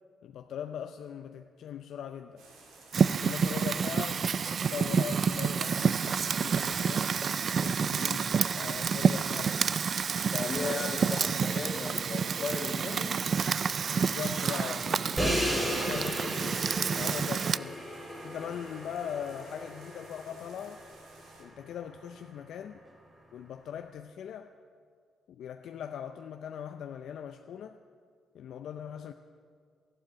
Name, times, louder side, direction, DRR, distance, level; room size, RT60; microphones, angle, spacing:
voice 1, 0.2-2.4 3.0-4.2 4.7-7.2 7.6-9.8 13.9-20.8 21.4-22.8 23.3-24.5 25.3-27.8 28.3-29.1, left 8 dB, 75° left, 0.6 m, -40 dB
sound 1, 2.4-21.4, right 3 dB, 85° right, 3.5 m, -55 dB
Fire, 2.9-17.6, right 6 dB, 50° right, 0.3 m, -29 dB
voice 2, 10.3-13.2, left 4 dB, 45° left, 2.1 m, -36 dB
Crash cymbal, 15.2-21.1, equal, 15° right, 4.5 m, -35 dB
12.5 x 12.0 x 9.0 m
cardioid pair, 90°, 0 cm